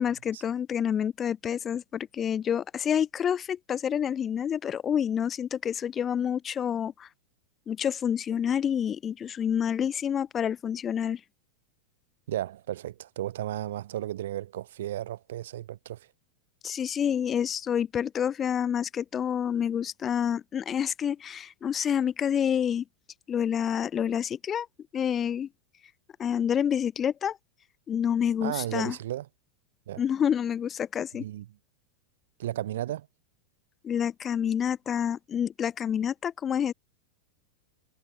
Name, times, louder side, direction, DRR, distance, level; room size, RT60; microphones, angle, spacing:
voice 1, 0.0-7.1 7.7-11.2 16.6-22.8 23.3-24.7 24.9-25.5 26.2-27.4 27.9-29.0 30.0-31.2 33.8-36.7, left 8 dB, 25° left, 0.6 m, -28 dB
voice 2, 12.3-16.1 28.4-29.3 29.9-30.0 31.1-31.5 32.4-33.1, right 13 dB, 60° right, 0.5 m, -34 dB
figure-of-eight pair, 90°, 0 cm